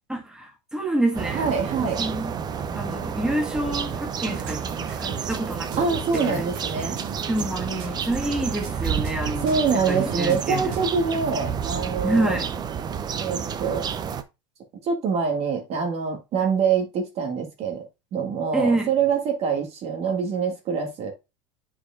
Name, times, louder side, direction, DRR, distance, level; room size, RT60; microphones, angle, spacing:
voice 1, 0.1-1.5 1.8-2.3 2.8-5.9 6.1-6.5 7.3-9.5 9.7-10.7 12.0-12.5 18.5-18.9, right 1 dB, 5° right, 1.7 m, -27 dB
sound 1, 1.1-14.2, right 7 dB, 25° right, 0.7 m, -30 dB
voice 2, 1.3-2.0 5.8-7.0 9.4-12.4 13.2-13.9 14.8-17.8 18.1-21.1, right 6 dB, 40° right, 1.6 m, -25 dB
sound 2, 4.3-11.1, right 5 dB, 60° right, 1.8 m, -39 dB
8.2 x 4.9 x 2.5 m
hypercardioid pair, 100°, 16 cm